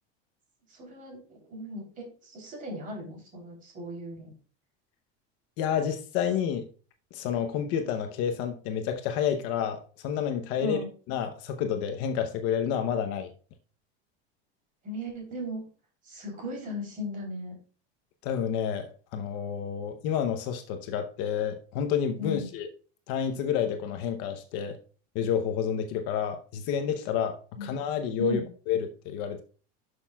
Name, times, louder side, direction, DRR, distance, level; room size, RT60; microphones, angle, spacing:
voice 1, 0.7-4.3 10.6-10.9 14.8-15.6 16.0-17.5 22.2-22.5 27.5-27.7 28.2-28.5, equal, 25° right, 3.4 m, -37 dB
voice 2, 5.6-6.7 7.1-10.8 11.1-13.3 18.2-22.7 23.1-24.8 25.1-28.4 28.7-29.4, left 8 dB, 50° left, 0.8 m, -29 dB
12.0 x 6.4 x 2.3 m
cardioid pair, 170°, 31 cm